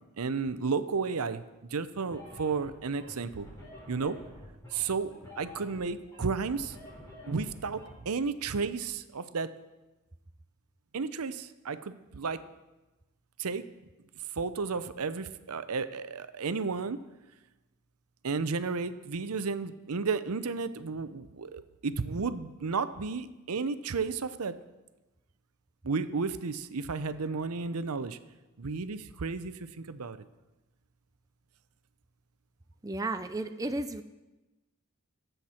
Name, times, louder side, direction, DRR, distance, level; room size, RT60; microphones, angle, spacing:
voice 1, 0.2-1.4 1.7-3.5 3.9-4.2 4.7-5.1 5.4-6.8 7.3-9.5 10.9-12.4 13.4-13.6 14.4-17.0 18.2-24.5 25.8-28.2 28.6-30.2, right 4 dB, 80° right, 12 dB, 0.7 m, -33 dB
sound 1, 2.0-8.0, left 1 dB, 15° left, 3.9 m, -48 dB
voice 2, 32.8-34.0, right 2 dB, 15° right, 8 dB, 0.4 m, -33 dB
23.5 x 8.0 x 4.4 m, 1.1 s
head